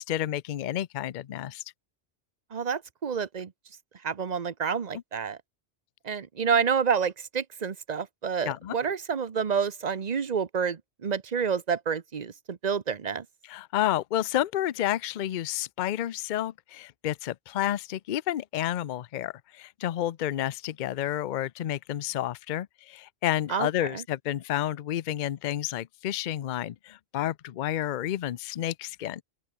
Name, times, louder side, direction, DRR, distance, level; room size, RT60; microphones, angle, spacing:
voice 1, 0.0-1.6 8.4-8.8 13.4-29.2, left 12 dB, 55° left, 0.6 m, -30 dB
voice 2, 2.5-3.5 4.0-5.4 6.0-13.2 23.5-24.0, right 6 dB, 45° right, 1.0 m, -29 dB
open air
omnidirectional pair, 1.1 m